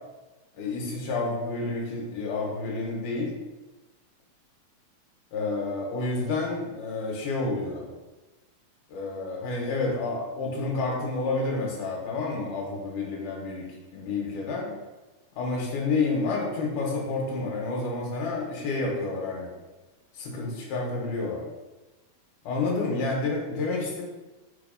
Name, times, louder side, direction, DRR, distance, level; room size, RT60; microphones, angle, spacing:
voice 1, 0.6-3.3 5.3-7.9 8.9-14.7 15.3-19.5 20.1-21.4 22.4-24.0, left 3 dB, 70° left, -1 dB, 2.5 m, -29 dB
4.7 x 4.0 x 5.2 m, 1.1 s
omnidirectional pair, 4.3 m